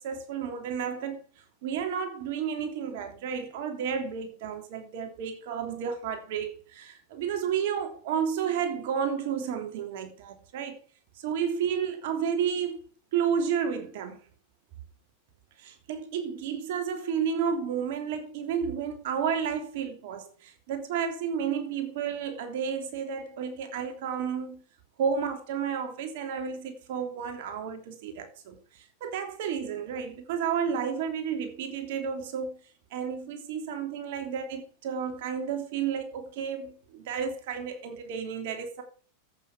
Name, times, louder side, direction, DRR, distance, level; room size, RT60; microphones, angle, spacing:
voice 1, 0.0-10.8 11.2-14.2 15.6-24.6 25.0-32.6 32.9-38.8, right 7 dB, 65° right, 3.0 m, -32 dB
12.0 x 8.7 x 6.1 m
hypercardioid pair, 110°, 0 cm